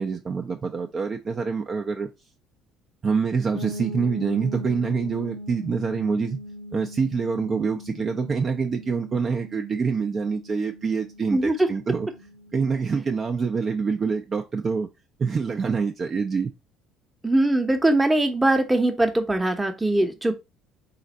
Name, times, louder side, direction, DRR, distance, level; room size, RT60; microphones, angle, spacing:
voice 1, 0.0-2.1 3.0-6.4 6.7-12.1 12.5-14.9 15.2-16.5, right 5 dB, 35° right, 0.5 m, -26 dB
sound 1, 3.5-13.2, left 1 dB, 60° left, 0.6 m, -40 dB
voice 2, 11.3-11.7 17.2-20.3, right 1 dB, 10° right, 0.8 m, -21 dB
4.0 x 2.5 x 4.1 m
figure-of-eight pair, 55°, 0 cm